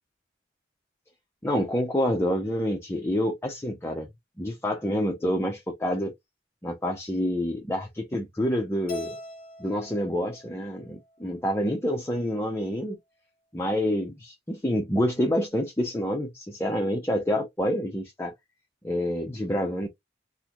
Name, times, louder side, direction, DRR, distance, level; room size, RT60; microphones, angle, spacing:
voice 1, 1.4-4.1 4.4-6.1 6.6-9.2 9.6-13.0 13.5-18.3 18.8-19.9, equal, 15° left, 0.5 m, -27 dB
Keyboard (musical), 8.9-11.2, equal, 50° left, 1.1 m, -42 dB
3.7 x 2.1 x 2.9 m
head